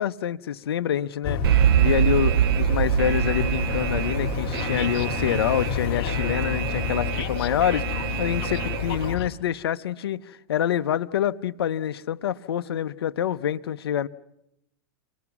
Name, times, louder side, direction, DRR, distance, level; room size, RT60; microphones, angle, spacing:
voice 1, 0.0-1.4 1.8-14.1, left 10 dB, 85° left, 0.8 m, -26 dB
sound 1, 1.2-9.3, left 7 dB, 45° left, 1.8 m, -30 dB
Alarm, 1.4-9.1, right 10 dB, 75° right, 1.3 m, -25 dB
29.0 x 21.0 x 6.0 m
hypercardioid pair, 125°, 13 cm